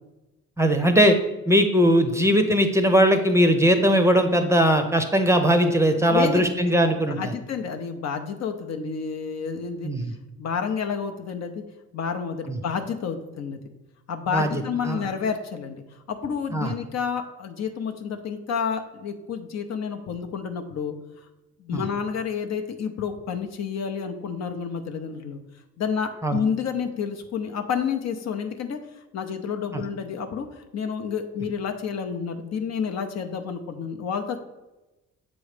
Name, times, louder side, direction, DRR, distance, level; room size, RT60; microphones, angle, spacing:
voice 1, 0.6-1.2 1.5-7.3 9.8-10.1 12.5-12.6 14.3-14.5 14.9-15.0 16.5-16.7 21.7-21.8 26.2-26.4, equal, 10° right, 6 dB, 0.6 m, -19 dB
voice 2, 6.1-6.7 7.1-9.9 10.4-11.6 11.9-13.6 14.1-15.8 16.1-21.0 21.6-25.4 25.8-28.8 29.1-34.4, left 6 dB, 60° left, 5 dB, 0.7 m, -29 dB
7.1 x 3.1 x 5.0 m, 1.0 s
cardioid pair, 90°, 30 cm